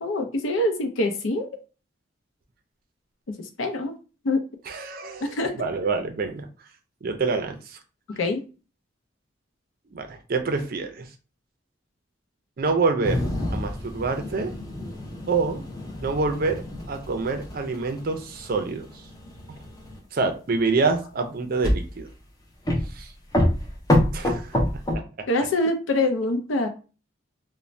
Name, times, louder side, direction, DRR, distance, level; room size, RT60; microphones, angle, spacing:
voice 1, 0.0-1.5 3.3-3.9 4.2-4.4 5.2-5.5 8.1-8.4 25.3-26.7, left 2 dB, 85° left, 6 dB, 0.5 m, -25 dB
voice 2, 4.7-6.4 7.0-7.8 9.9-11.1 12.6-13.2 13.5-14.5 15.3-15.7 16.0-16.6 16.9-18.9 20.1-22.1 22.9-23.1 24.1-24.6 24.9-25.3, right 4 dB, 50° right, 6 dB, 0.4 m, -26 dB
sound 1, 13.0-20.0 21.6-22.1 22.6-23.0 23.3-24.9, left 1 dB, 20° left, 0.5 m, -27 dB
2.5 x 2.1 x 3.1 m, 0.34 s
head